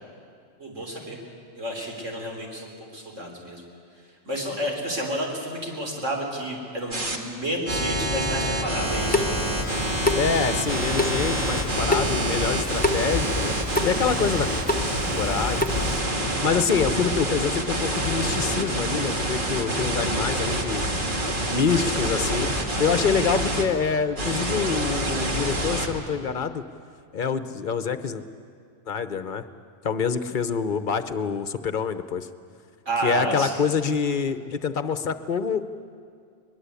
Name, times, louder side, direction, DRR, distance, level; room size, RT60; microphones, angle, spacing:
voice 1, 0.6-1.2 1.6-3.6 4.3-9.4 32.9-33.6, right 1 dB, 85° right, 0 dB, 4.2 m, -30 dB
sound 1, 6.9-7.2 7.7-23.6 24.2-25.9, right 1 dB, 45° right, 2.1 m, -26 dB
Water tap faucet / Sink (filling or washing) / Drip, 8.8-16.0, left 2 dB, 10° left, 1.0 m, -29 dB
voice 2, 10.2-13.5 13.8-14.5 15.2-15.9 16.4-20.9 21.5-22.5 22.8-26.6 27.1-28.2 28.9-29.4 29.8-32.3 33.0-35.6, left 6 dB, 45° left, 11 dB, 0.9 m, -26 dB
22.0 x 21.5 x 8.3 m, 2.2 s
omnidirectional pair, 1.3 m